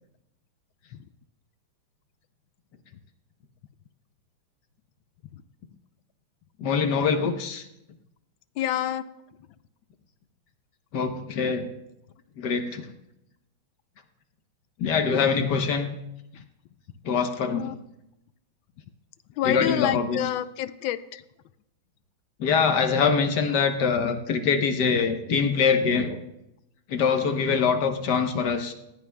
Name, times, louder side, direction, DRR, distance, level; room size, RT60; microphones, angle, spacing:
voice 1, 6.6-7.6 10.9-11.7 12.4-12.9 14.8-15.9 17.0-17.7 19.4-20.2 22.4-26.2 26.9-28.7, left 5 dB, 60° left, 7 dB, 1.5 m, -24 dB
voice 2, 8.6-9.0 17.5-17.8 19.4-21.2, left 12 dB, 85° left, 14 dB, 1.4 m, -28 dB
19.5 x 16.0 x 2.3 m, 0.86 s
omnidirectional pair, 2.1 m